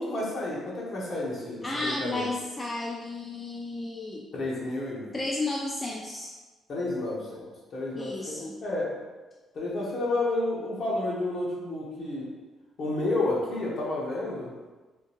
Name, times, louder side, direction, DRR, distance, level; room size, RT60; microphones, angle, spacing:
voice 1, 0.0-2.3 4.3-5.1 6.7-8.3 8.6-9.0 9.5-12.3 12.8-14.5, left 2 dB, 55° left, -4 dB, 1.1 m, -30 dB
voice 2, 1.6-4.3 5.1-6.3 7.9-8.6, left 2 dB, 25° left, -2 dB, 0.4 m, -33 dB
3.6 x 2.7 x 2.9 m, 1.2 s
cardioid pair, 90°, 0 cm